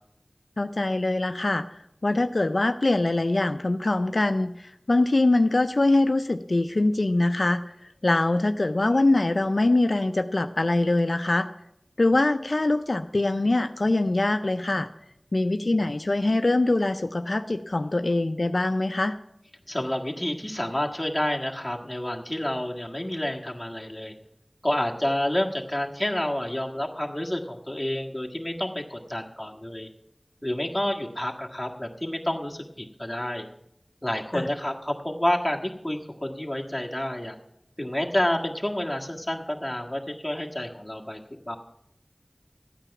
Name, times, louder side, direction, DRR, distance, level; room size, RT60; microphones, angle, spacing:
voice 1, 0.6-1.6 2.0-7.6 8.0-11.5 12.0-14.9 15.3-19.2 34.3-34.5, left 2 dB, 75° left, 9 dB, 0.5 m, -23 dB
voice 2, 19.7-24.1 24.6-29.9 30.4-33.5 34.0-37.4 37.8-41.2 41.5-41.6, left 1 dB, 15° left, 0 dB, 1.7 m, -29 dB
14.0 x 9.0 x 5.9 m, 0.80 s
wide cardioid pair, 40°, 0 cm